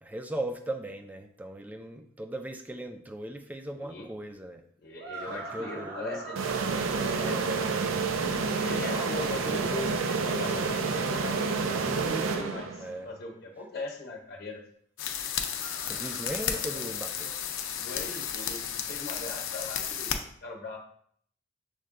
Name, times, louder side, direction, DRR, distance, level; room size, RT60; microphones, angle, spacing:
voice 1, 0.0-4.6 5.3-6.2 12.8-13.1 15.8-17.3, right 1 dB, 10° right, 4 dB, 0.3 m, -38 dB
voice 2, 3.8-4.1 4.8-6.4 6.9-7.4 8.4-14.6 17.8-20.8, left 2 dB, 50° left, 1 dB, 0.9 m, -39 dB
sound 1, 5.0-7.9 10.6-12.7 15.3-17.4, right 2 dB, 55° right, 0.8 m, -43 dB
sound 2, 6.4-13.0, right 4 dB, 75° right, 0.4 m, -29 dB
sound 3, 15.0-20.2, left 8 dB, 75° left, 0.5 m, -33 dB
6.4 x 2.2 x 3.7 m, 0.63 s
head